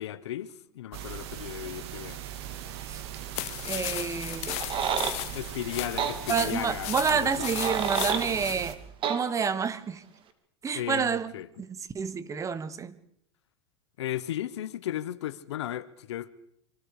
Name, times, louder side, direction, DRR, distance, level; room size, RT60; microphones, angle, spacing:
voice 1, 0.0-2.2 5.3-7.5 10.7-11.5 14.0-16.3, left 12 dB, 80° left, 1.3 m, -35 dB
sound 1, 0.9-8.7, right 10 dB, 70° right, 2.7 m, -40 dB
sound 2, 3.4-8.7, left 20 dB, 50° left, 0.9 m, -36 dB
voice 2, 3.6-4.6 6.3-8.8 9.1-10.0 10.6-11.3 11.6-13.0, right 6 dB, 20° right, 1.5 m, -29 dB
sound 3, 4.5-5.2 6.0-6.2 7.3-8.3 9.0-9.2, right 7 dB, 35° right, 2.5 m, -29 dB
25.0 x 25.0 x 5.0 m
hypercardioid pair, 110°, 14 cm